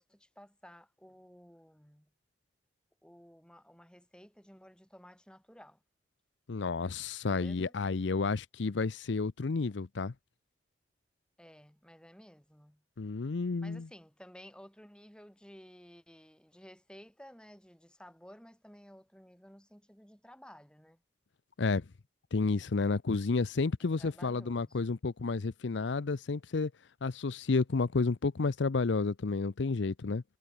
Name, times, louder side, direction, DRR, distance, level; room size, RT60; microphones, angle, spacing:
voice 1, 0.0-2.1 3.0-5.8 7.3-7.7 11.4-12.8 13.6-21.0 24.0-24.8, equal, 5° left, 6.3 m, -55 dB
voice 2, 6.5-10.1 13.0-13.9 21.6-21.8 22.3-26.7 27.0-30.2, left 4 dB, 75° left, 0.6 m, -31 dB
head